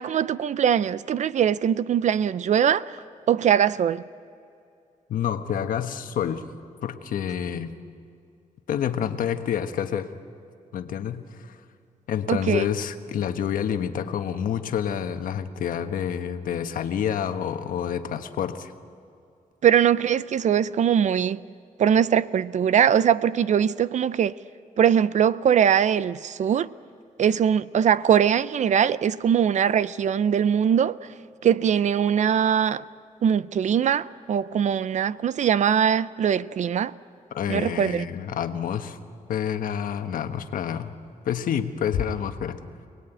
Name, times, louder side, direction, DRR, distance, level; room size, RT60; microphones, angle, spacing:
voice 1, 0.0-3.0 3.3-4.0 12.3-12.7 19.6-21.4 21.8-24.3 24.8-26.7 27.2-31.0 31.4-32.8 33.2-36.9 37.5-38.1, right 8 dB, 60° right, 0.5 m, -21 dB
voice 2, 5.1-6.4 6.8-7.7 8.7-10.1 10.7-11.5 12.1-18.7 37.3-39.0 39.3-40.9 41.2-42.6, left 8 dB, 85° left, 1.3 m, -28 dB
27.5 x 19.5 x 9.1 m
cardioid pair, 120°, 14 cm